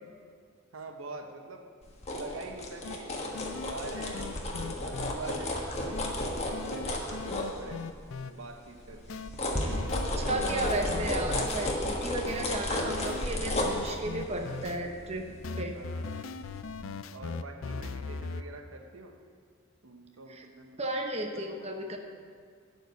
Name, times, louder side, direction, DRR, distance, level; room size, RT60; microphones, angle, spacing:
voice 1, 0.7-1.7 2.1-6.4 6.7-7.9 8.2-10.5 12.0-12.3 15.7-16.3 17.1-19.1 19.8-20.8 21.3-22.0, right 2 dB, 85° right, 5 dB, 0.9 m, -45 dB
sound 1, 1.8-8.1 8.5-16.1 16.4-16.6, left 1 dB, 30° left, 1.4 m, -33 dB
sound 2, 2.8-3.0 3.3-5.1 5.9-6.1 6.5-8.3 9.1-9.3 9.7-11.6 12.3-12.5 12.9-14.8 15.4-18.4, left 4 dB, 75° left, 0.4 m, -39 dB
voice 2, 10.2-15.3 15.6-15.7 20.3-20.4 20.8-22.0, right 1 dB, 30° right, 3 dB, 0.9 m, -34 dB
12.0 x 4.9 x 8.1 m, 2.1 s
head